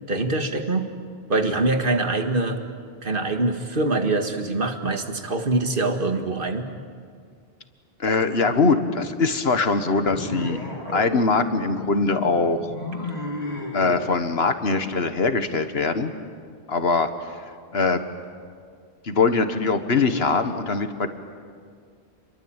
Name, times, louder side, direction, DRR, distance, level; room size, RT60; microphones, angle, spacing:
voice 1, 0.1-0.9 1.3-2.6 3.0-6.7, right 2 dB, 60° right, 6 dB, 2.0 m, -24 dB
voice 2, 8.0-10.6 10.9-12.6 13.7-16.1 16.7-17.4 17.7-18.0 19.0-21.1, left 4 dB, 75° left, 9 dB, 1.8 m, -22 dB
sound 1, 10.1-14.0, left 1 dB, 40° left, 3.3 m, -33 dB
28.5 x 22.5 x 9.0 m, 2.1 s
omnidirectional pair, 1.0 m